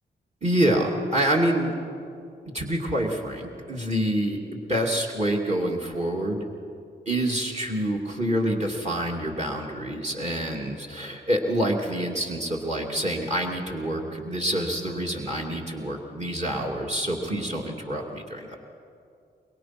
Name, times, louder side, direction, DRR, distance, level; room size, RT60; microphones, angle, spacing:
voice 1, 0.4-1.7 2.5-6.5 7.1-18.6, right 1 dB, 35° right, 1 dB, 2.7 m, -27 dB
23.0 x 22.0 x 6.1 m, 2.4 s
cardioid pair, 75°, 19 cm